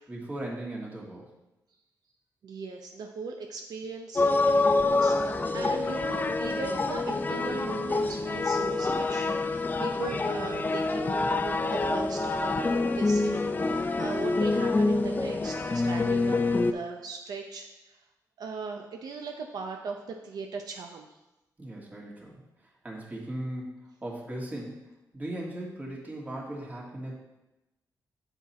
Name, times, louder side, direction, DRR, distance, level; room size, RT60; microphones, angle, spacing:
voice 1, 0.1-1.3 21.6-22.4 22.8-27.2, right 1 dB, 25° right, -3 dB, 1.9 m, -38 dB
voice 2, 2.4-4.2 4.7-18.0 18.4-21.1, right 4 dB, 70° right, 3 dB, 0.6 m, -39 dB
sound 1, 4.2-16.7, left 3 dB, 25° left, 0.4 m, -26 dB
7.1 x 5.7 x 4.2 m, 0.99 s
cardioid pair, 105°, 7 cm